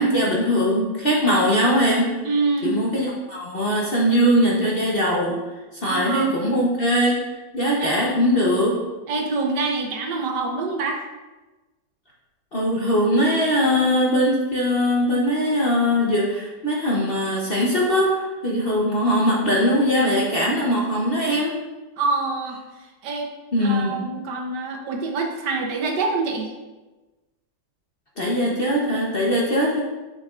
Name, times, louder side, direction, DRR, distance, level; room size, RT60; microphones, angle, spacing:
voice 1, 0.0-2.1 2.6-5.4 5.7-7.2 7.5-8.8 12.5-21.6 23.5-24.0 28.2-29.8, equal, 40° left, -4 dB, 0.9 m, -21 dB
voice 2, 2.2-2.8 5.8-6.3 7.8-8.0 9.1-11.0 22.0-23.3 23.6-26.5, right 3 dB, 70° right, 2 dB, 1.4 m, -26 dB
6.8 x 6.7 x 2.4 m, 1.2 s
omnidirectional pair, 1.9 m